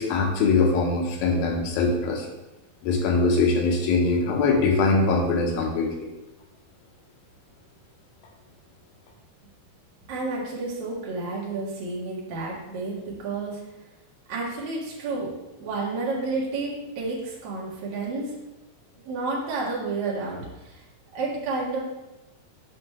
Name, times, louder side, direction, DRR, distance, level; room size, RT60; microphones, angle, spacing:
voice 1, 0.0-2.3 2.8-5.9, left 3 dB, 80° left, 0 dB, 2.8 m, -22 dB
voice 2, 10.1-13.6 14.3-15.3 15.6-18.4 19.0-20.8 21.1-21.8, right 3 dB, 55° right, -5 dB, 2.7 m, -30 dB
7.7 x 5.6 x 3.3 m, 0.97 s
omnidirectional pair, 4.3 m